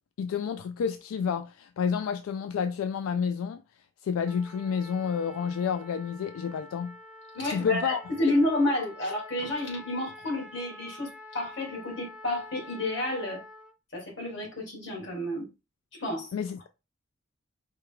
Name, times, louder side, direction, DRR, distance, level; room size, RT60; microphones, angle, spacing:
voice 1, 0.2-3.6 4.0-7.0 7.5-8.3 16.3-16.7, left 7 dB, 90° left, 0.3 m, -30 dB
Trumpet, 4.2-13.7, left 1 dB, 5° right, 0.4 m, -47 dB
voice 2, 7.3-13.4 13.9-15.5 15.9-16.3, left 1 dB, 65° left, 2.0 m, -30 dB
4.8 x 2.2 x 3.3 m
head